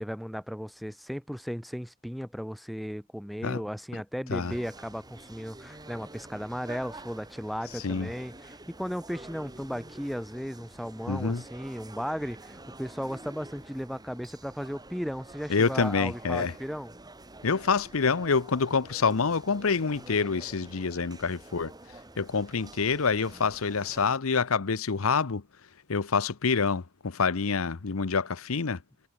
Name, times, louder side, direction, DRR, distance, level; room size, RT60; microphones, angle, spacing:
voice 1, 0.0-16.9, equal, ahead, 2.6 m, -36 dB
sound 1, 4.4-24.2, right 2 dB, 20° right, 4.0 m, -48 dB
voice 2, 11.1-11.4 15.5-16.5 17.4-21.7 22.2-25.4 25.9-28.8, left 5 dB, 90° left, 0.8 m, -27 dB
head